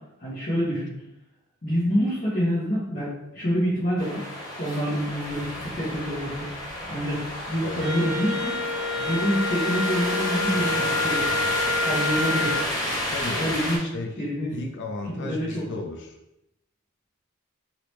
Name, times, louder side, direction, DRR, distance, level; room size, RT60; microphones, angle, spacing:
voice 1, 0.2-0.9 1.6-4.2 4.6-6.5 6.9-8.5 8.9-11.2 11.8-12.6 13.3-13.8 14.2-14.5 15.2-15.6, equal, 40° left, -10 dB, 1.1 m, -27 dB
sound 1, 4.0-13.8, left 1 dB, 20° left, 0.8 m, -31 dB
voice 2, 7.6-7.9 13.1-13.5 13.8-14.2 14.5-16.2, left 2 dB, 55° left, 2 dB, 0.5 m, -34 dB
Wind instrument woodwind instrument, 7.8-12.7, left 3 dB, 55° right, 0.6 m, -28 dB
3.0 x 2.8 x 3.1 m, 0.87 s
head